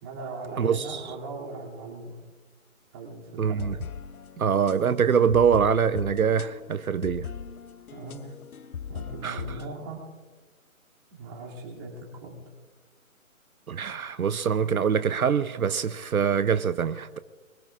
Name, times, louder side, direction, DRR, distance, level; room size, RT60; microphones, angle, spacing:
voice 1, 0.0-2.2 2.9-3.6 7.9-8.3 8.9-10.0 11.1-12.4, right 3 dB, 15° right, 2.8 m, -39 dB
voice 2, 0.6-1.0 3.4-3.7 4.4-7.3 9.2-9.4 13.7-17.2, right 7 dB, 80° right, 0.8 m, -24 dB
sound 1, 3.5-9.7, left 7 dB, 85° left, 0.8 m, -40 dB
26.5 x 22.0 x 2.5 m
hypercardioid pair, 170°, 42 cm